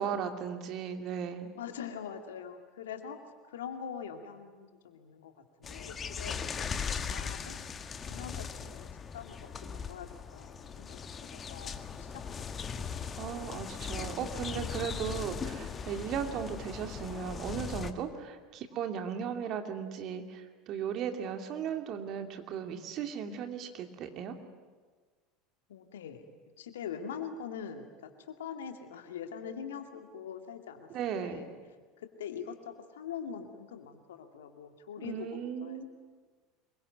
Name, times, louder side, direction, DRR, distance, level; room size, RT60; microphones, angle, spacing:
voice 1, 0.0-1.5 13.2-24.4 30.9-31.5 35.0-35.8, right 8 dB, 45° right, 6 dB, 2.7 m, -36 dB
voice 2, 1.6-3.2 3.5-6.3 6.8-7.6 8.1-12.2 12.5-12.6 12.9-13.5 25.7-26.2 26.6-30.9 31.2-31.5 32.0-35.8, left 7 dB, 70° left, 6 dB, 2.3 m, -43 dB
sound 1, 5.6-17.9, left 6 dB, 30° left, 1.7 m, -39 dB
26.0 x 23.0 x 9.5 m, 1.4 s
figure-of-eight pair, 75°, 0 cm